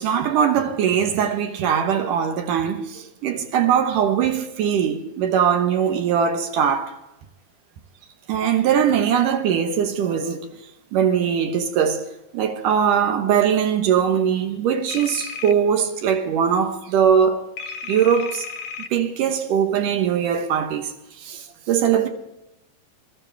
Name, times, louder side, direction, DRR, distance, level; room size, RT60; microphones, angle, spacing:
voice 1, 0.0-7.0 8.3-10.5 10.9-12.1 12.3-18.5 18.9-20.9 21.2-22.1, right 8 dB, 75° right, 2.6 m, -21 dB
sound 1, 14.9-15.5 17.6-18.9, left 6 dB, 70° left, 2.1 m, -33 dB
20.5 x 13.0 x 3.4 m
omnidirectional pair, 3.8 m